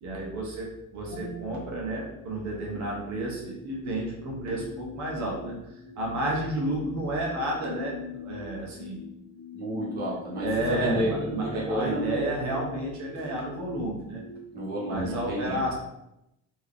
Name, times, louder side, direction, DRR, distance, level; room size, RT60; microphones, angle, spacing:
voice 1, 0.0-5.6 6.0-9.0 10.4-14.2 14.9-15.7, right 1 dB, 70° right, -2 dB, 1.3 m, -31 dB
sound 1, 1.1-15.0, left 4 dB, 90° left, 0.8 m, -42 dB
voice 2, 9.5-12.2 14.5-15.6, equal, 35° right, -6 dB, 1.2 m, -30 dB
4.3 x 3.1 x 3.6 m, 0.86 s
cardioid pair, 170°, 29 cm